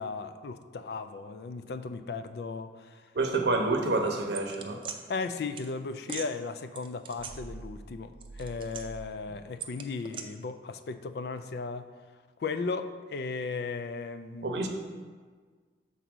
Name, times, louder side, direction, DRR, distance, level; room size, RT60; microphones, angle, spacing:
voice 1, 0.0-3.0 5.1-11.9 12.4-14.5, left 4 dB, 60° left, 10 dB, 0.4 m, -36 dB
voice 2, 3.1-4.8 14.4-14.7, right 3 dB, 70° right, 3 dB, 0.7 m, -28 dB
sound 1, 4.3-5.0 5.6-5.7 6.0-6.3 6.8-7.9 8.1-9.1 9.6-10.2, right 6 dB, 30° right, 0.4 m, -41 dB
6.0 x 4.0 x 6.1 m, 1.5 s
head